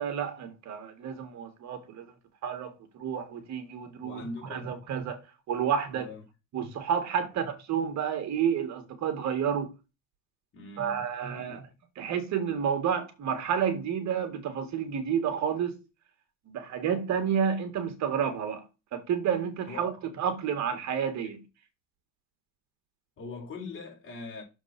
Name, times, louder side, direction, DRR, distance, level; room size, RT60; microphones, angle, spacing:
voice 1, 0.0-2.1 2.4-4.2 4.5-5.2 5.5-6.1 6.5-9.7 10.8-11.6 12.0-15.8 16.5-18.6 18.9-21.4, right 8 dB, 55° right, 2.0 m, -30 dB
voice 2, 4.0-4.7 5.9-6.2 7.2-7.3 10.5-11.1 11.4-11.7 19.7-19.8 23.2-24.4, left 3 dB, 40° left, 4.1 m, -41 dB
6.8 x 4.5 x 5.9 m
cardioid pair, 135°, 33 cm